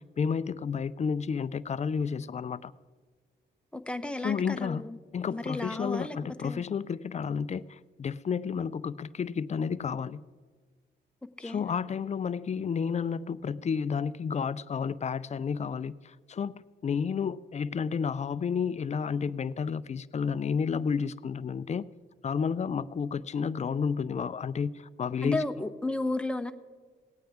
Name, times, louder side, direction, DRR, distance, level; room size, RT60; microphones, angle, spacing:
voice 1, 0.0-2.7 4.2-4.9 5.1-10.2 11.4-21.9 22.2-25.4, left 6 dB, 35° left, 0.4 m, -31 dB
voice 2, 3.7-5.0 5.3-6.2 6.4-6.6 11.4-11.6 25.2-26.5, left 2 dB, 5° left, 0.7 m, -33 dB
18.0 x 9.0 x 3.5 m
cardioid pair, 65°, 19 cm